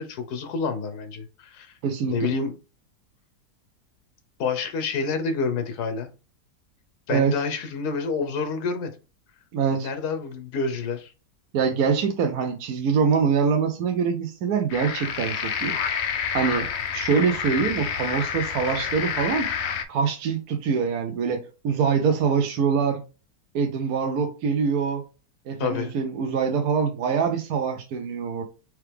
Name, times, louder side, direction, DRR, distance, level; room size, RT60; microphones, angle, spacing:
voice 1, 0.0-1.7 2.1-2.5 4.4-6.1 7.1-9.0 9.8-11.1 25.6-25.9, left 4 dB, 80° left, 8 dB, 1.4 m, -28 dB
voice 2, 1.8-2.1 7.1-7.3 9.5-9.9 11.5-15.8 16.3-16.7 16.9-19.5 19.9-23.0 23.5-25.0 25.5-28.4, right 6 dB, 70° right, 4 dB, 1.1 m, -24 dB
sound 1, 14.7-19.8, left 7 dB, 65° left, 0.6 m, -28 dB
4.6 x 3.2 x 3.4 m, 0.33 s
omnidirectional pair, 1.7 m